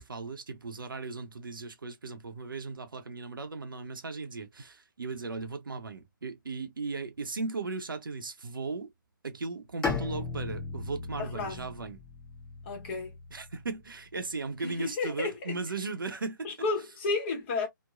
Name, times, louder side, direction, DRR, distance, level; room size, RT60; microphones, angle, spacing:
voice 1, 0.0-8.9 9.2-12.0 13.3-16.5, right 3 dB, 75° right, 0.7 m, -37 dB
Bowed string instrument, 9.8-13.8, left 4 dB, 10° left, 1.0 m, -37 dB
voice 2, 11.2-11.7 12.6-13.1 14.6-15.5 16.4-17.7, left 4 dB, 35° left, 1.1 m, -32 dB
2.9 x 2.1 x 2.4 m
figure-of-eight pair, 140°, 11 cm